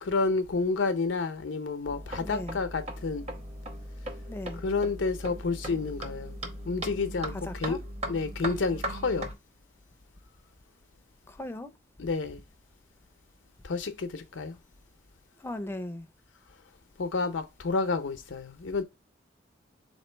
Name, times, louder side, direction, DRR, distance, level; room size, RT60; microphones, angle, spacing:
voice 1, 0.0-3.3 4.6-6.4 6.6-7.8 8.1-9.3 12.0-12.4 13.6-14.6 17.0-18.8, left 4 dB, 85° left, 0.6 m, -30 dB
sound 1, 1.8-9.3, right 1 dB, 35° right, 0.8 m, -38 dB
voice 2, 2.2-2.6 4.3-4.6 7.3-7.8 11.3-11.7 15.4-16.1, left 1 dB, 15° left, 0.4 m, -37 dB
3.7 x 3.0 x 4.3 m
head